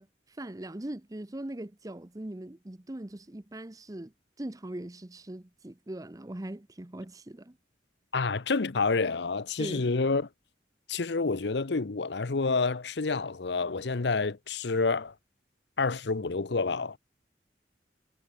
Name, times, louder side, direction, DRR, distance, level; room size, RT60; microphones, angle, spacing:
voice 1, 0.0-4.1 4.4-7.6 9.6-9.8, right 1 dB, 20° right, 0.7 m, -40 dB
voice 2, 8.1-10.3 10.9-15.1 15.8-17.0, left 4 dB, 70° left, 0.8 m, -28 dB
head